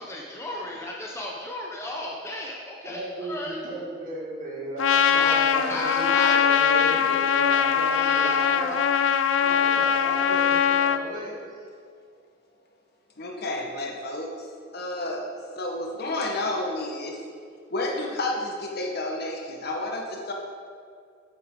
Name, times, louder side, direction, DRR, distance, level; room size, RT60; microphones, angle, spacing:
voice 1, 0.0-3.7 5.1-6.9 7.8-8.5, left 1 dB, 15° left, -2 dB, 0.7 m, -35 dB
voice 2, 2.8-8.8 9.4-11.7, right 1 dB, 45° right, -4 dB, 1.9 m, -35 dB
Trumpet, 4.8-11.0, left 8 dB, 85° left, 0.4 m, -22 dB
voice 3, 13.2-17.2 17.7-20.3, left 2 dB, 55° left, 1 dB, 1.2 m, -31 dB
8.1 x 7.9 x 3.8 m, 2.2 s
head